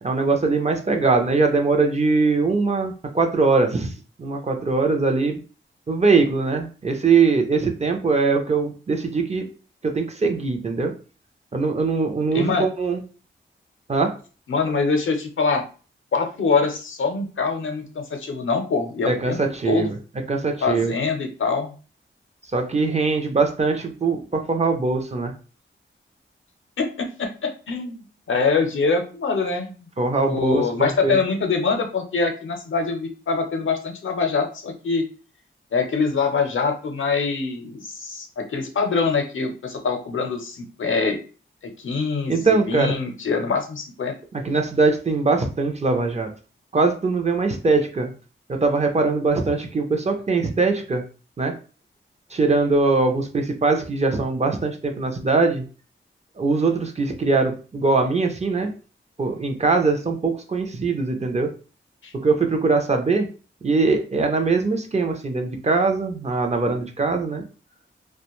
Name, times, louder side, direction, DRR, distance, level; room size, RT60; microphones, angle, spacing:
voice 1, 0.0-3.9 4.2-5.4 5.9-9.4 9.8-10.9 11.5-13.0 13.9-14.1 19.1-20.0 20.3-20.9 22.5-25.3 30.0-31.2 42.3-43.0 44.3-46.3 46.7-48.1 48.5-51.0 51.4-51.5 52.3-55.6 56.4-58.7 59.2-61.5 62.2-63.3 63.6-67.4, right 4 dB, 35° right, 4 dB, 0.5 m, -21 dB
voice 2, 12.3-12.7 14.5-15.6 16.1-19.4 19.7-19.9 20.6-21.7 26.8-29.9 30.2-35.0 35.7-41.2 41.6-44.1 62.0-62.1, left 4 dB, 75° left, 5 dB, 0.6 m, -24 dB
2.4 x 2.2 x 2.9 m, 0.36 s
wide cardioid pair, 110°, 21 cm